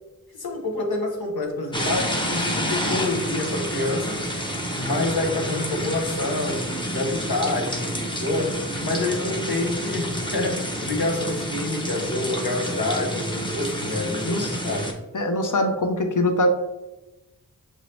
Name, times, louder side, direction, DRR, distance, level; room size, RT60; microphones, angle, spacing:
voice 1, 0.3-4.2 4.8-14.9, left 2 dB, 85° left, 1 dB, 0.8 m, -27 dB
sound 1, 1.7-14.9, equal, 15° left, 0.7 m, -29 dB
voice 2, 15.1-16.5, left 1 dB, 60° left, 5 dB, 0.7 m, -22 dB
6.1 x 2.7 x 3.2 m, 1.0 s
wide cardioid pair, 45°, 36 cm